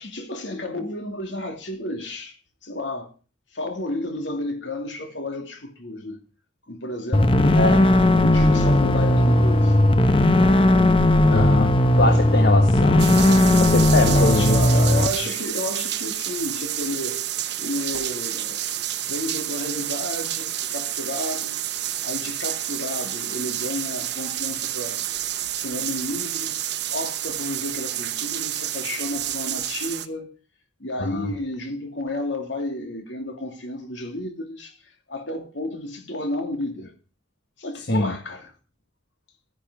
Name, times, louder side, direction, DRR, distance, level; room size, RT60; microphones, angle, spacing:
voice 1, 0.0-2.4 2.6-3.1 3.5-6.2 6.7-7.8 8.2-9.8 13.9-17.3 17.6-18.6 19.0-21.6 22.0-25.0 25.5-26.6 26.9-30.3 30.8-34.7 35.1-36.9 37.6-38.5, left 1 dB, 80° left, 2.8 m, -31 dB
sound 1, 7.1-15.1, left 1 dB, 30° left, 0.9 m, -17 dB
voice 2, 11.3-13.2 13.6-14.6 31.0-31.3 37.9-38.1, left 2 dB, 65° left, 1.5 m, -23 dB
sound 2, 13.0-30.1, right 12 dB, 65° right, 1.0 m, -29 dB
13.0 x 10.5 x 5.0 m
head